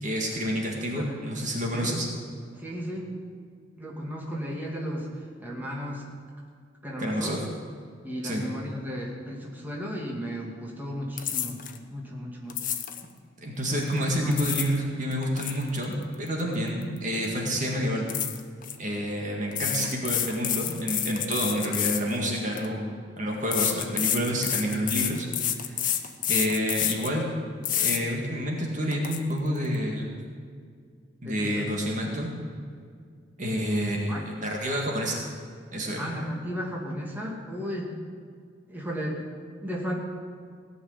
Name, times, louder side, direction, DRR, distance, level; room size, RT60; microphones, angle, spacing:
voice 1, 0.0-2.1 7.0-7.4 8.2-8.4 13.4-18.1 18.8-22.9 23.2-25.3 25.6-26.0 26.3-27.2 27.7-30.2 31.2-32.3 33.4-35.2 35.7-36.1, equal, 40° right, -1 dB, 2.0 m, -28 dB
voice 2, 1.0-1.3 1.7-1.9 2.5-3.1 3.7-5.1 5.4-6.0 6.8-7.4 8.0-11.6 11.9-12.7 13.7-14.4 31.2-31.7 32.0-32.1 34.1-34.3 36.0-38.0 38.7-39.2 39.6-39.9, equal, 10° right, -3 dB, 2.3 m, -35 dB
sound 1, 11.2-11.8 12.5-13.0 14.1-14.8 15.1-17.0 17.2-17.5 18.1-18.7 19.5-22.7 23.5-27.1 27.6-28.0 28.5-28.6 28.9-29.2, left 10 dB, 45° left, 0.9 m, -29 dB
17.5 x 6.5 x 9.7 m, 2.1 s
head